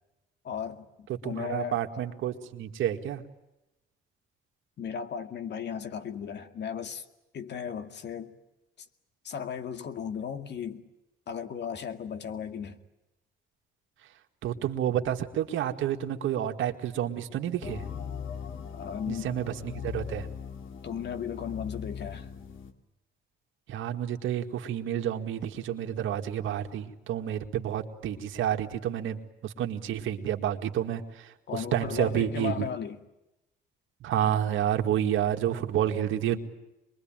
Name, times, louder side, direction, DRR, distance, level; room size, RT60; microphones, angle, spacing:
voice 1, 0.4-1.8 4.8-7.0 7.3-8.3 9.2-10.8 11.3-12.8 18.7-19.3 20.8-22.3 31.5-33.0, left 7 dB, 60° left, 2.2 m, -36 dB
voice 2, 1.2-3.2 14.4-17.8 19.1-20.3 23.7-32.6 34.0-36.4, right 10 dB, 80° right, 2.1 m, -30 dB
sound 1, 17.6-22.7, left 7 dB, 85° left, 2.4 m, -39 dB
25.5 x 22.5 x 9.0 m
cardioid pair, 90°, 20 cm